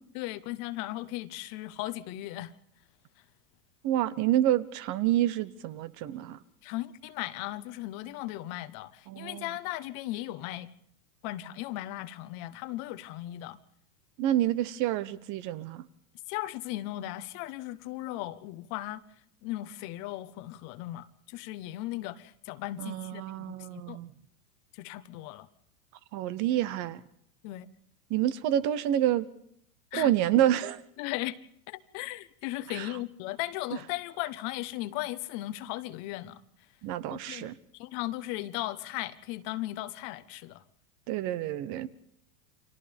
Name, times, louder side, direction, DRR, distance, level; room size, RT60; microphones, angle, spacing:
voice 1, 0.1-2.5 6.6-10.7 11.2-13.6 16.3-19.0 19.4-24.0 24.7-25.5 27.4-27.7 29.9-30.1 31.0-31.3 31.7-36.4 37.1-37.5 37.7-40.6, left 16 dB, 45° left, 14 dB, 1.1 m, -37 dB
voice 2, 3.8-6.4 9.1-9.5 14.2-15.9 22.8-24.1 26.1-27.0 28.1-29.3 29.9-30.8 32.7-32.9 36.8-37.5 41.1-41.9, right 12 dB, 40° right, 16 dB, 1.1 m, -28 dB
30.0 x 25.0 x 3.5 m, 0.68 s
supercardioid pair, 130°, 45 cm